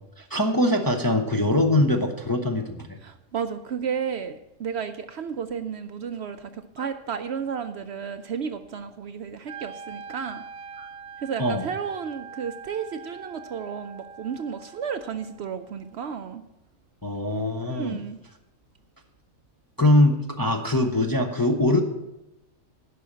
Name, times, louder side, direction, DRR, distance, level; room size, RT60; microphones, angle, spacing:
voice 1, 0.2-2.9 6.8-6.9 10.8-10.9 11.4-11.7 17.0-18.0 19.8-21.8, left 1 dB, 20° left, 3 dB, 0.6 m, -22 dB
voice 2, 3.0-10.4 11.2-16.4 17.7-18.2, right 7 dB, 65° right, 9 dB, 0.7 m, -32 dB
Wind instrument woodwind instrument, 9.5-15.5, right 6 dB, 80° right, 1.1 m, -43 dB
11.0 x 5.2 x 8.5 m, 0.93 s
omnidirectional pair, 1.4 m